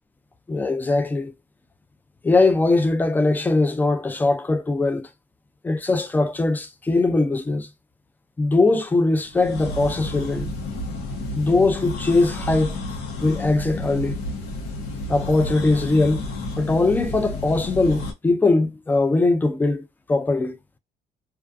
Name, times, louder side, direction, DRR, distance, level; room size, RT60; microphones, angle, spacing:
voice 1, 0.5-1.3 2.2-5.1 5.6-7.7 8.4-10.5 11.3-12.8 13.2-14.2 15.1-16.3 16.6-20.6, left 3 dB, 10° left, 0.4 m, -21 dB
sound 1, 9.3-18.1, left 2 dB, 75° left, 0.9 m, -31 dB
2.3 x 2.2 x 2.5 m
cardioid pair, 110°, 17 cm